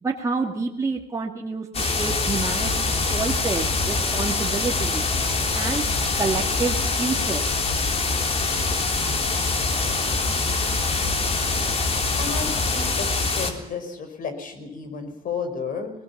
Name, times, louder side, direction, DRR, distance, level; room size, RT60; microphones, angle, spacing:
voice 1, 0.0-5.0 5.5-5.8 6.2-7.4, right 4 dB, 20° right, 0 dB, 2.1 m, -28 dB
sound 1, 1.7-13.5, left 3 dB, 35° left, 3.4 m, -24 dB
voice 2, 12.2-15.9, left 5 dB, 55° left, 7 dB, 5.3 m, -32 dB
21.0 x 20.5 x 7.3 m, 0.88 s
cardioid pair, 110°, 17 cm